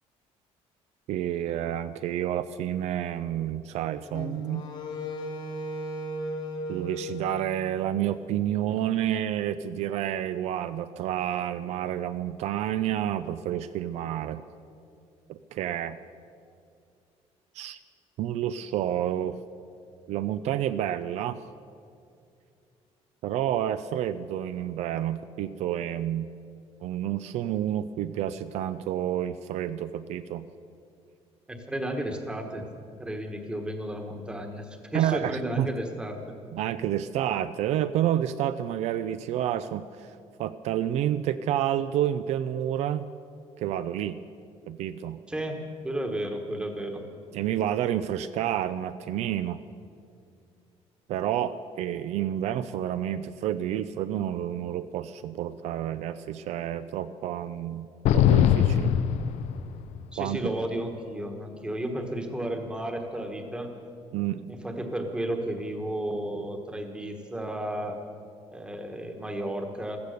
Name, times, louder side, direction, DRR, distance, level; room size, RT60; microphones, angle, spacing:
voice 1, 1.1-4.7 6.7-14.4 15.3-16.0 17.6-17.8 18.2-19.4 20.1-21.4 23.2-26.3 26.8-30.4 34.9-35.7 36.5-40.1 40.4-43.1 43.6-44.2 44.7-45.2 47.3-49.6 51.1-57.9 58.1-59.0 60.2-60.5 64.1-64.4, right 11 dB, 70° right, 12 dB, 0.5 m, -29 dB
Wind instrument woodwind instrument, 4.1-8.3, left 1 dB, 45° left, 1.5 m, -36 dB
voice 2, 31.5-32.7 33.0-36.3 45.3-45.6 45.8-47.0 60.1-63.7 64.5-68.0 68.5-70.0, right 1 dB, 10° right, 4 dB, 1.3 m, -33 dB
sound 1, 58.0-60.0, left 10 dB, 75° left, 0.6 m, -21 dB
15.5 x 14.0 x 6.5 m, 2.4 s
cardioid pair, 175°, 12 cm